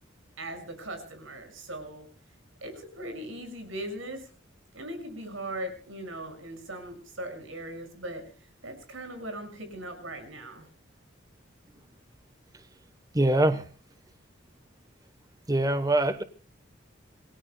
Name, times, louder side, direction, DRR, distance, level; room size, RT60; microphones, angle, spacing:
voice 1, 0.4-2.0 2.6-4.2 4.7-8.2 8.6-10.7, right 1 dB, 85° right, 7 dB, 6.3 m, -39 dB
voice 2, 13.1-13.6 15.5-16.2, right 1 dB, 20° right, 10 dB, 1.0 m, -23 dB
27.0 x 18.0 x 2.2 m, 0.40 s
head